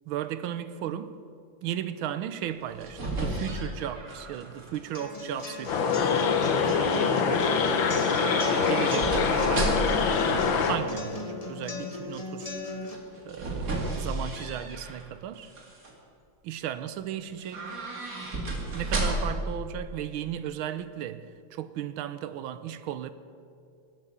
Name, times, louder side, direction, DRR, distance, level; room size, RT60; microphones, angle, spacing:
voice 1, 0.1-1.2 1.6-6.1 6.6-7.8 8.5-9.8 10.6-12.6 13.2-15.5 16.4-17.8 18.7-23.1, right 11 dB, 80° right, 1.5 m, -35 dB
sound 1, 2.5-4.9 5.2-5.8 8.0-10.1 12.9-15.0 15.4-15.9 17.4-19.5 19.7-19.8, right 2 dB, 40° right, 2.5 m, -33 dB
sound 2, 4.9-12.9, left 3 dB, 25° left, 0.9 m, -37 dB
sound 3, 5.7-10.8, left 5 dB, 70° left, 1.8 m, -24 dB
19.0 x 8.4 x 7.1 m
omnidirectional pair, 2.3 m